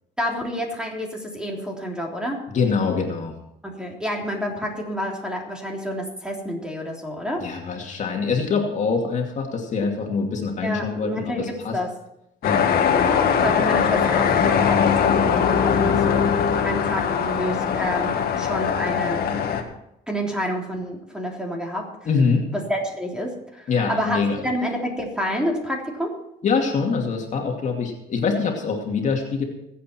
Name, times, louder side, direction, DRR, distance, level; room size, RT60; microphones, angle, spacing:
voice 1, 0.2-2.4 3.6-7.4 10.6-11.9 13.4-16.3 16.6-19.3 20.1-21.9 22.5-26.1, equal, 5° right, 0 dB, 3.4 m, -28 dB
voice 2, 2.5-3.3 7.4-11.8 12.4-12.7 22.1-22.5 23.7-24.4 26.4-29.4, left 5 dB, 45° left, 1 dB, 2.5 m, -24 dB
sound 1, 12.4-19.6, left 7 dB, 65° left, 2.0 m, -21 dB
22.0 x 8.4 x 4.5 m, 0.82 s
cardioid pair, 110°, 17 cm